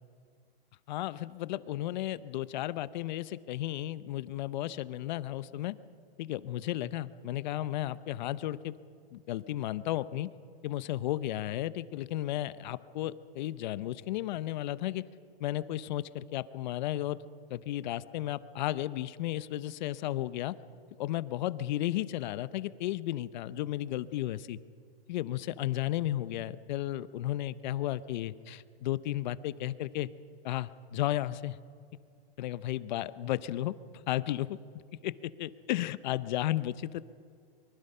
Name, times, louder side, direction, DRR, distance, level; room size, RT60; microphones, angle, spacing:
voice 1, 0.9-5.8 6.2-8.8 9.1-10.3 10.6-15.0 15.4-17.2 17.5-20.5 21.0-24.6 25.1-30.1 30.4-31.6 32.4-33.7 34.1-34.6 35.0-37.0, left 14 dB, 50° left, 16 dB, 0.8 m, -34 dB
24.0 x 23.5 x 5.6 m, 2.2 s
hypercardioid pair, 145°, 30 cm